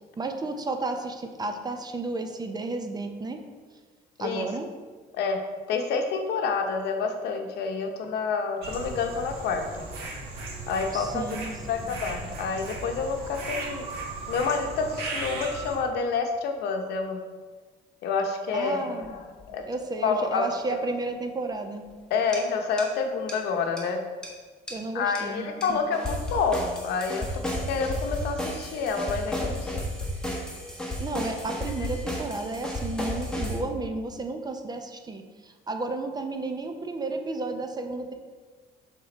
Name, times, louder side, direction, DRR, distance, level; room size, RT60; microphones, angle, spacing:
voice 1, 0.2-3.4 4.2-4.7 10.9-11.5 18.5-19.1 19.7-21.9 24.7-25.8 31.0-38.1, right 3 dB, 25° right, 5 dB, 0.6 m, -32 dB
voice 2, 5.7-9.9 10.7-11.4 11.7-13.8 14.3-17.2 18.0-19.2 19.5-19.6 20.0-20.5 22.1-24.0 24.9-27.4 27.7-29.9 31.8-31.9, left 5 dB, 80° left, 5 dB, 0.8 m, -28 dB
sound 1, 8.6-15.8, right 2 dB, 75° right, 1.5 m, -36 dB
sound 2, 19.0-19.1 19.4-19.5 22.3-22.4 22.8-22.9 23.3-23.4 23.8-23.9 24.2-24.3 24.7-24.8 25.2-25.3 25.6-25.7 25.9-33.6, left 1 dB, 5° left, 1.4 m, -32 dB
6.7 x 3.6 x 4.1 m, 1.4 s
cardioid pair, 110°, 17 cm